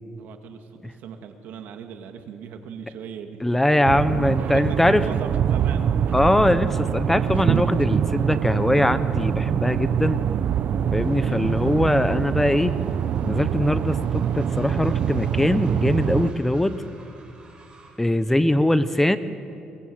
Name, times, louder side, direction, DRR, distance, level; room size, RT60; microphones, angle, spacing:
voice 1, 0.2-3.4 4.5-5.9 11.2-11.6, right 7 dB, 80° right, 5 dB, 2.1 m, -39 dB
voice 2, 3.4-5.0 6.1-10.2 10.9-12.8 13.2-14.0 14.3-16.8 18.0-19.2, left 1 dB, 10° left, 12 dB, 0.9 m, -21 dB
sound 1, 3.8-16.3, right 8 dB, 60° right, 0.9 m, -24 dB
Train, 11.0-18.1, right 3 dB, 30° right, 6.0 m, -52 dB
23.0 x 21.0 x 8.0 m, 2.6 s
cardioid pair, 110°, 3 cm